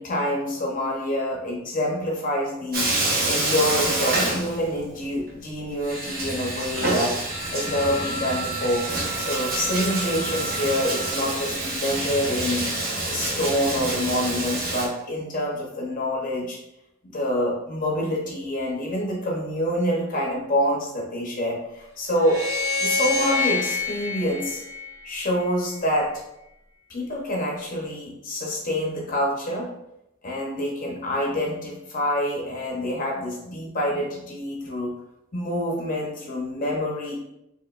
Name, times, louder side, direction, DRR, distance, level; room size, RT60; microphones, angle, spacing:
voice 1, 0.0-7.2 7.5-8.8 9.2-12.6 13.0-16.6 17.1-22.4 22.8-24.6 25.0-26.2 26.9-29.7 30.2-34.9 35.3-37.1, left 1 dB, 40° left, -2 dB, 0.8 m, -26 dB
Bathtub (filling or washing), 2.7-5.0 5.3-5.4 5.8-14.9, right 2 dB, 45° right, 0.9 m, -27 dB
Wind instrument woodwind instrument, 7.3-11.3, right 5 dB, 75° right, 0.6 m, -36 dB
sound 1, 22.1-25.4, left 4 dB, 15° right, 1.1 m, -27 dB
4.7 x 2.9 x 2.4 m, 0.85 s
head